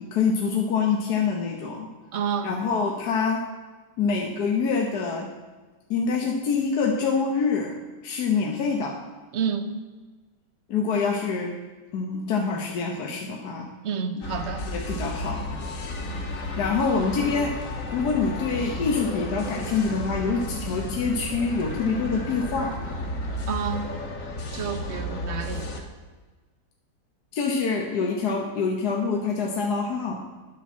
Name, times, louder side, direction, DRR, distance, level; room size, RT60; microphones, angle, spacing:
voice 1, 0.0-1.9 2.4-3.4 4.0-5.3 5.9-7.7 8.0-9.0 10.7-11.5 11.9-13.7 14.2-14.4 14.7-15.5 16.6-17.6 17.9-22.8 27.3-30.2, left 5 dB, 70° left, 1 dB, 1.6 m, -25 dB
voice 2, 2.1-2.5 9.3-9.8 13.8-14.6 23.5-23.9 24.5-25.9, right 7 dB, 50° right, 8 dB, 1.0 m, -29 dB
sound 1, 14.2-25.8, left 1 dB, 55° left, 1.7 m, -33 dB
11.0 x 6.0 x 7.2 m, 1.3 s
omnidirectional pair, 1.8 m